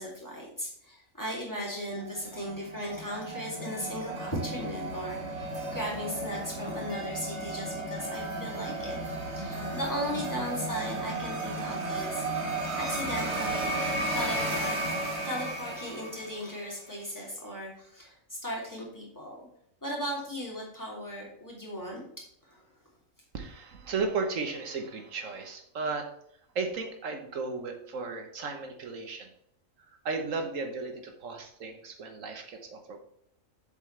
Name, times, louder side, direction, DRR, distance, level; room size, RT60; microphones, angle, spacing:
voice 1, 0.0-12.2 12.8-13.8 14.1-14.8 15.2-19.5 19.8-22.0 22.4-22.7, equal, 15° left, -4 dB, 2.9 m, -37 dB
sound 1, 2.0-16.7, right 2 dB, 60° right, 2.0 m, -34 dB
voice 2, 23.3-26.1 26.5-29.3 30.0-33.0, right 4 dB, 80° right, 5 dB, 1.5 m, -35 dB
7.5 x 7.4 x 3.3 m, 0.71 s
omnidirectional pair, 1.3 m